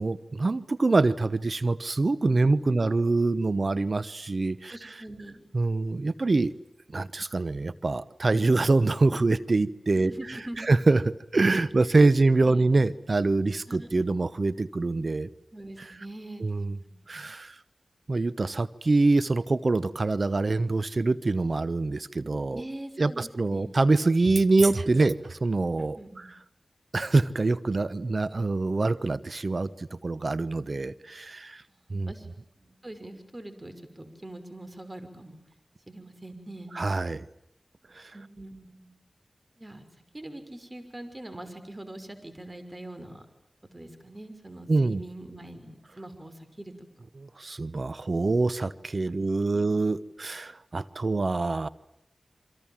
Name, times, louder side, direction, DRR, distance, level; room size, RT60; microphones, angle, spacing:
voice 1, 0.0-4.8 5.5-6.5 6.9-11.0 11.3-15.3 16.4-16.8 17.1-17.5 18.1-22.6 23.0-26.3 26.9-31.6 31.9-32.1 36.7-37.2 37.9-38.1 44.7-45.0 47.2-51.7, right 3 dB, 60° right, 16 dB, 1.0 m, -25 dB
voice 2, 2.4-2.9 4.7-5.4 9.9-10.7 12.1-12.7 13.7-13.9 15.5-16.5 16.8-17.1 22.5-23.7 26.0-26.3 31.7-31.8 32.1-32.3 32.6-35.4 35.9-36.7 38.1-38.9 39.6-39.8 40.1-43.2 43.7-46.7 49.1-49.8, right 1 dB, 30° right, 9 dB, 5.9 m, -43 dB
28.5 x 25.0 x 7.5 m, 0.79 s
cardioid pair, 40°, 0 cm